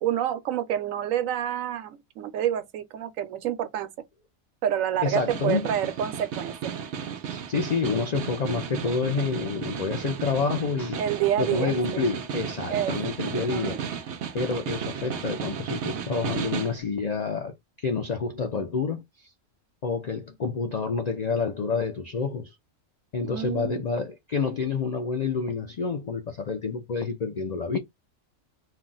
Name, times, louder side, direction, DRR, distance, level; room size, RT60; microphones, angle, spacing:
voice 1, 0.0-3.9 4.6-6.8 11.0-12.1 12.7-12.9 13.2-13.9 23.2-23.8, right 10 dB, 85° right, 1.0 m, -28 dB
voice 2, 5.0-5.7 7.2-11.0 11.4-13.8 14.3-19.3 19.8-22.6 23.1-27.8, left 5 dB, 70° left, 0.4 m, -28 dB
Snare drum, 5.0-16.8, right 7 dB, 65° right, 0.8 m, -34 dB
2.4 x 2.3 x 3.8 m
omnidirectional pair, 1.4 m